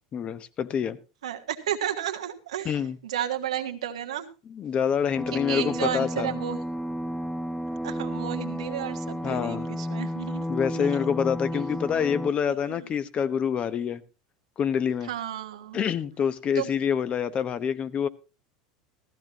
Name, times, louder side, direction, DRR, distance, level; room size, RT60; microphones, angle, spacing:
voice 1, 0.1-1.0 2.6-3.0 4.5-6.3 9.2-9.7 10.5-14.0 14.6-15.1 15.7-18.1, left 7 dB, 35° left, 0.9 m, -26 dB
voice 2, 1.2-4.3 5.3-6.6 7.8-10.5 10.7-11.1 11.5-11.7 12.5-12.9 15.0-15.9 16.5-16.7, right 10 dB, 90° right, 1.5 m, -33 dB
sound 1, 5.2-12.3, equal, 5° left, 0.6 m, -32 dB
15.0 x 14.5 x 2.9 m
hypercardioid pair, 100°, 3 cm